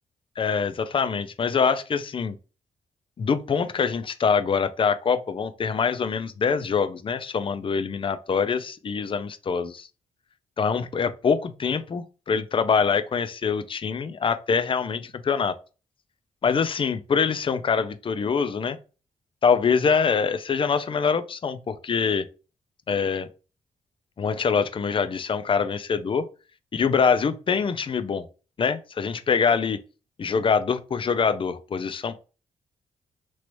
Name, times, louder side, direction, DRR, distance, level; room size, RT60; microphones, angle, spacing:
voice 1, 0.4-2.4 3.2-9.9 10.6-15.5 16.4-18.8 19.4-22.2 22.9-23.3 24.2-26.3 26.7-28.3 28.6-29.8 30.2-32.2, left 6 dB, 40° left, 0.4 m, -24 dB
3.0 x 3.0 x 2.6 m
supercardioid pair, 55°, 14 cm